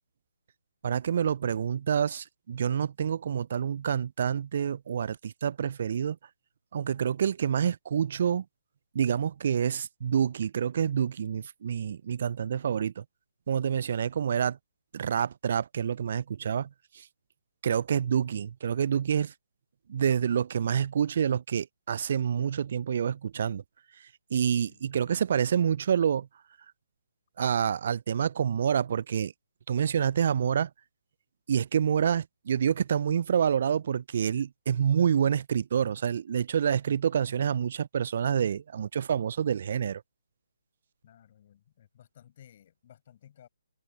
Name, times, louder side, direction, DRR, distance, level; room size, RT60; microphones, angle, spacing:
voice 1, 0.8-6.2 6.7-8.4 8.9-13.0 13.5-14.6 14.9-16.7 16.9-17.1 17.6-19.3 19.9-23.6 24.3-26.3 27.4-29.3 29.7-30.7 31.5-40.0, right 8 dB, 50° right, 0.5 m, -27 dB
voice 2, 24.3-24.9 41.0-43.5, left 10 dB, 40° left, 7.2 m, -57 dB
figure-of-eight pair, 140°, 0 cm